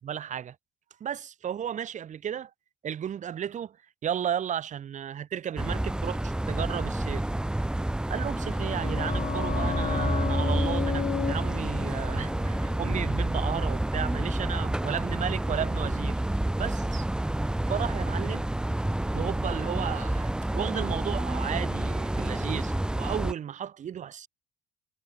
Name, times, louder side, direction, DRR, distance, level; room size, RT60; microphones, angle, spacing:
voice 1, 0.0-0.5 1.0-2.5 2.8-3.8 4.0-7.3 8.1-16.2 16.6-17.0 17.7-18.5 19.1-24.3, right 9 dB, 45° right, 1.6 m, -34 dB
sound 1, 5.6-23.3, right 1 dB, 5° right, 0.5 m, -29 dB
sound 2, 8.3-13.7 13.9-14.0, left 8 dB, 45° left, 1.9 m, -34 dB
cardioid pair, 110°, 17 cm